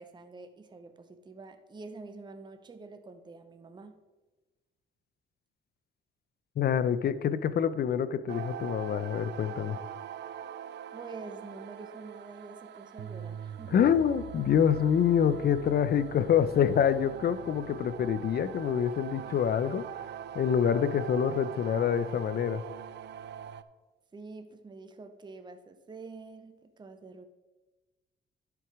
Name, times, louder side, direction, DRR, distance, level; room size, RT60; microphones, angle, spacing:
voice 1, 0.0-4.0 10.9-13.7 24.1-27.2, right 3 dB, 20° right, 8 dB, 0.7 m, -47 dB
voice 2, 6.6-9.8 13.7-19.9 20.3-22.6, left 8 dB, 55° left, 14 dB, 0.6 m, -26 dB
sound 1, 8.3-23.6, right 9 dB, 60° right, 0.5 m, -43 dB
11.0 x 4.7 x 4.9 m, 1.2 s
cardioid pair, 90°, 20 cm